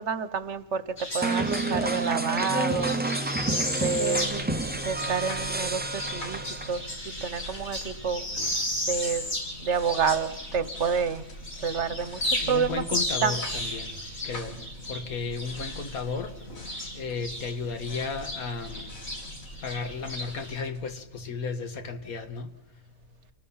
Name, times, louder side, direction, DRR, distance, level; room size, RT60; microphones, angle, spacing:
voice 1, 0.0-3.0 3.8-4.4 4.8-6.4 6.7-8.2 8.9-9.3 9.6-11.2 11.6-12.2 12.5-12.8 13.2-13.3 14.5-14.6, right 6 dB, 55° right, 1.2 m, -29 dB
sound 1, 1.0-11.1 11.4-17.5 17.8-20.5, left 1 dB, 50° left, 5.2 m, -34 dB
sound 2, 1.2-6.9, right 2 dB, 15° right, 0.3 m, -29 dB
sound 3, 3.6-21.4, equal, 70° left, 2.8 m, -44 dB
voice 2, 12.4-13.9 14.2-14.5 14.9-16.3 17.0-18.9 19.6-22.5, left 4 dB, 85° left, 2.1 m, -34 dB
28.5 x 19.0 x 5.7 m
omnidirectional pair, 1.5 m